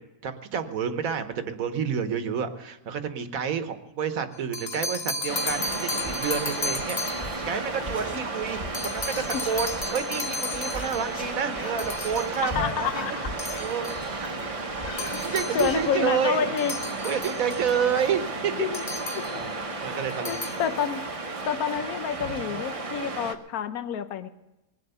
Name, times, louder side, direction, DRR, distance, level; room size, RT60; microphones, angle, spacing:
voice 1, 0.0-14.4 15.0-16.5 17.0-18.7 19.8-20.6, right 7 dB, 70° right, 9 dB, 1.4 m, -29 dB
sound 1, 4.3-7.4 8.7-11.2 11.8-12.5 13.4-14.1 15.0-15.8 16.6-17.8 18.7-19.4 20.1-20.7, left 2 dB, 25° left, 0.6 m, -34 dB
Waves surf, 5.3-23.4, right 3 dB, 30° right, 0.8 m, -33 dB
Whispering, 5.4-16.5 16.8-16.9 17.1-17.5, left 2 dB, 45° left, 2.7 m, -41 dB
voice 2, 12.4-13.3 15.1-16.7 18.6-18.8 19.1-19.4 20.3-21.0 21.4-24.3, left 8 dB, 80° left, 11 dB, 1.3 m, -29 dB
20.0 x 7.8 x 6.8 m, 0.96 s
omnidirectional pair, 1.5 m